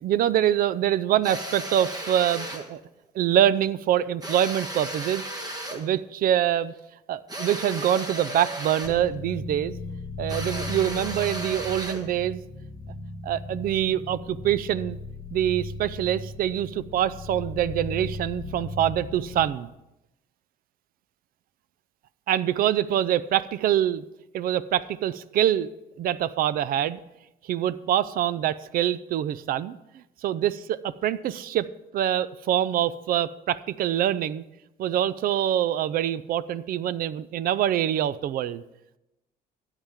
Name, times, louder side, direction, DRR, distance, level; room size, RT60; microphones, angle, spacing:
voice 1, 0.0-2.8 3.1-5.2 5.7-6.7 7.1-9.7 10.2-12.4 13.2-15.0 15.3-19.7 22.3-24.0 24.3-25.7 26.0-27.0 27.4-29.8 30.2-31.7 31.9-34.4 34.8-38.6, right 11 dB, 60° right, 18 dB, 0.5 m, -25 dB
sound 1, 1.2-2.7 4.2-5.9 7.3-9.0 10.3-12.1, right 1 dB, 25° right, 1.4 m, -35 dB
sound 2, 8.8-19.5, left 2 dB, 25° left, 1.5 m, -37 dB
13.5 x 9.0 x 3.6 m, 0.92 s
cardioid pair, 110°, 17 cm